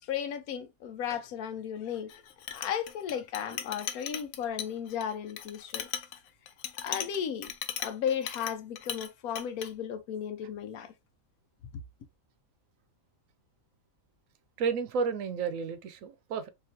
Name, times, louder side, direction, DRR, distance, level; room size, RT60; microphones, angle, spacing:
voice 1, 0.0-2.1 2.5-5.9 6.8-7.5 7.8-10.9, left 8 dB, 90° left, 1.1 m, -35 dB
Chink clink, 2.1-9.1 9.4-9.7, left 9 dB, 70° left, 0.8 m, -38 dB
voice 2, 14.6-16.5, right 5 dB, 70° right, 1.0 m, -31 dB
3.8 x 2.9 x 2.8 m
omnidirectional pair, 1.5 m